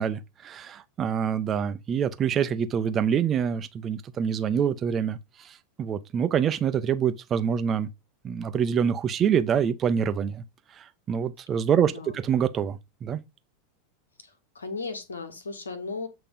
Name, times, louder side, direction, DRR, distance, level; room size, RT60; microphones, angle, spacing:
voice 1, 0.0-7.9 8.2-10.4 10.8-13.2, right 8 dB, 30° right, 0.9 m, -26 dB
voice 2, 11.7-12.2 14.2-16.1, left 4 dB, 80° left, 1.8 m, -36 dB
8.4 x 3.3 x 5.5 m
figure-of-eight pair, 85°, 0 cm